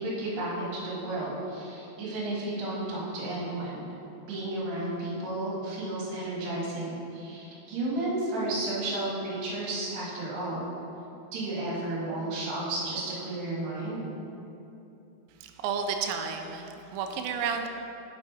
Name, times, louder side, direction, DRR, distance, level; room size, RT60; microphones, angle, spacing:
voice 1, 0.0-3.9 4.3-10.7 11.3-14.1, right 2 dB, 65° right, -7 dB, 3.4 m, -32 dB
voice 2, 15.4-17.7, right 6 dB, 85° right, 4 dB, 2.7 m, -32 dB
8.3 x 4.3 x 4.8 m, 2.9 s
omnidirectional pair, 5.2 m